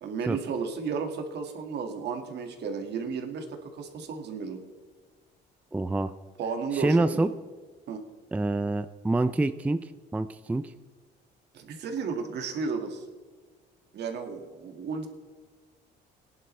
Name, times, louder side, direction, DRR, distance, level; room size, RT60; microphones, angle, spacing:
voice 1, 0.0-4.6 6.4-7.3 7.9-8.0 11.5-13.1 13.9-15.1, right 5 dB, 65° right, 5 dB, 1.9 m, -33 dB
voice 2, 5.7-6.1 6.7-7.3 8.3-10.7, right 2 dB, 5° right, 12 dB, 0.4 m, -26 dB
18.5 x 11.0 x 3.3 m, 1.5 s
cardioid pair, 110°, 19 cm